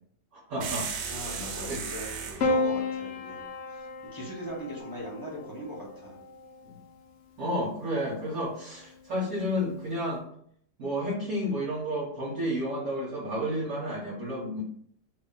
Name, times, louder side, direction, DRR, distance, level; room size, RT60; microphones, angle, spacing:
voice 1, 0.3-1.0 1.3-1.8 6.6-6.7 7.4-10.2 10.8-14.6, equal, 60° right, -6 dB, 1.4 m, -31 dB
sound 1, 0.6-2.5, right 5 dB, 75° right, 1.2 m, -35 dB
voice 2, 1.1-2.1 2.4-6.2, equal, 20° left, -6 dB, 0.6 m, -40 dB
Piano, 2.4-6.9 8.1-8.7, left 2 dB, 80° left, 0.6 m, -33 dB
2.8 x 2.8 x 3.8 m, 0.65 s
omnidirectional pair, 1.9 m